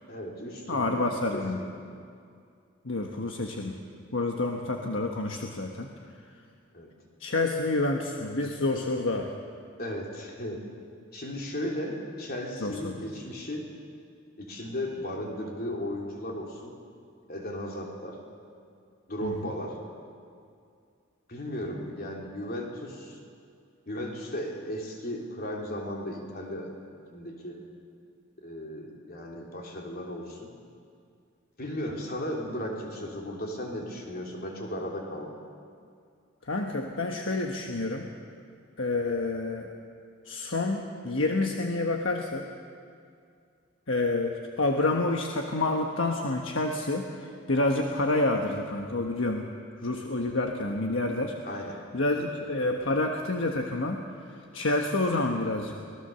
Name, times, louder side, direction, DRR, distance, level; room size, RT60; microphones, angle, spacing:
voice 1, 0.1-1.7 6.7-6.9 9.8-10.7 11.1-13.7 14.4-16.7 17.3-18.2 19.1-19.8 21.3-23.2 23.9-26.7 27.1-27.6 28.4-30.5 31.6-35.3 51.4-51.8 52.1-52.2, left 1 dB, 50° left, 0 dB, 3.4 m, -36 dB
voice 2, 0.7-1.6 2.8-3.8 4.1-5.9 7.2-9.3 12.6-13.0 19.2-19.5 36.4-38.1 38.8-39.7 40.2-42.5 43.9-49.5 49.8-51.4 51.9-54.1 54.5-55.7, left 2 dB, 70° left, 2 dB, 1.3 m, -28 dB
25.0 x 18.5 x 6.9 m, 2.4 s
head